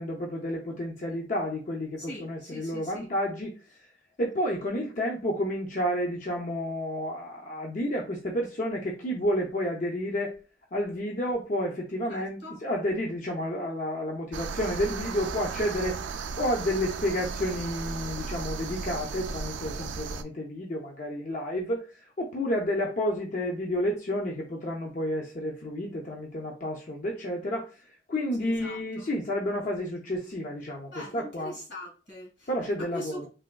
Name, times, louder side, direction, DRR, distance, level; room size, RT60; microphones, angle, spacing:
voice 1, 0.0-3.8 4.2-10.4 10.7-16.0 16.4-31.5 32.5-33.3, equal, 45° left, 0.5 m, -30 dB
voice 2, 2.0-3.1 12.1-12.6 28.4-29.1 30.9-32.5 32.8-33.3, equal, 75° left, 1.8 m, -41 dB
sound 1, 14.3-20.2, right 5 dB, 80° right, 0.3 m, -35 dB
3.4 x 2.9 x 2.2 m
head